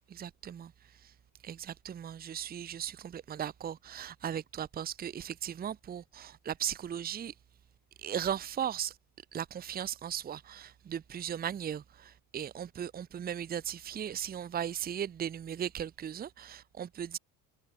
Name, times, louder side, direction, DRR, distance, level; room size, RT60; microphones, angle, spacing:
voice 1, 0.1-1.1 1.4-7.3 8.0-9.0 9.3-17.2, right 9 dB, 25° right, 0.9 m, -37 dB
cardioid pair, 140°, 36 cm